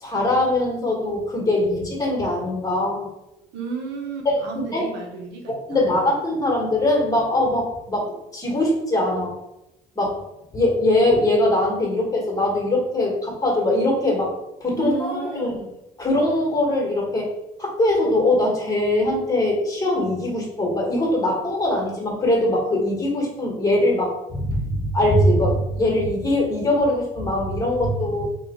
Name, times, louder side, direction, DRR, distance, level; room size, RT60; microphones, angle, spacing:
voice 1, 0.0-3.1 4.2-4.4 4.7-4.9 5.7-9.3 9.9-10.2 10.5-14.3 14.6-15.5 16.0-17.3 17.6-28.3, left 1 dB, 20° left, -2 dB, 1.5 m, -21 dB
voice 2, 3.5-6.1 14.8-15.7, right 5 dB, 90° right, 2 dB, 0.9 m, -33 dB
3.0 x 2.7 x 4.3 m, 0.88 s
cardioid pair, 110°, 17 cm